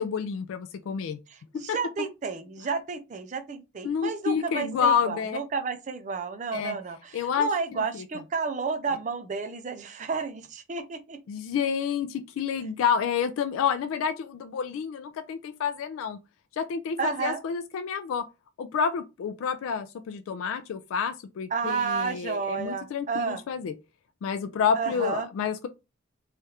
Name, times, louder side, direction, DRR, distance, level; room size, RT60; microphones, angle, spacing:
voice 1, 0.0-1.2 1.7-1.8 3.8-5.4 6.5-6.8 7.1-8.0 11.3-16.2 16.6-18.3 18.6-23.7 24.2-25.7, left 7 dB, 85° left, 0.3 m, -29 dB
voice 2, 1.3-11.2 12.6-12.7 17.0-17.4 21.5-23.4 24.7-25.3, right 5 dB, 35° right, 0.4 m, -31 dB
3.2 x 2.4 x 2.8 m
head